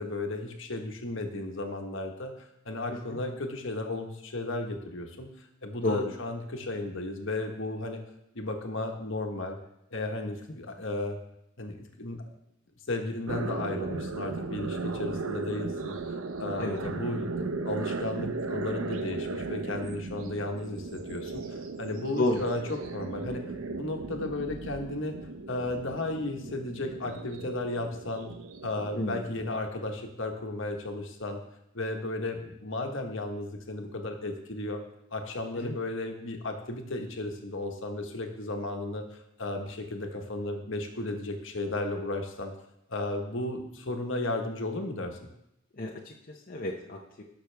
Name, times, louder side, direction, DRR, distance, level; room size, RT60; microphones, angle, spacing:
voice 1, 0.0-8.0 8.3-9.6 9.9-11.2 11.6-12.2 12.9-23.4 23.8-25.1 25.5-28.3 28.6-31.4 31.7-34.8 35.1-39.0 39.4-42.5 42.9-45.2, left 2 dB, 60° left, 3 dB, 1.4 m, -34 dB
sound 1, 13.3-29.6, right 3 dB, 70° right, 0.8 m, -36 dB
voice 2, 45.8-46.1 46.5-47.2, left 2 dB, 40° left, -2 dB, 0.9 m, -30 dB
18.5 x 6.4 x 3.5 m, 0.82 s
head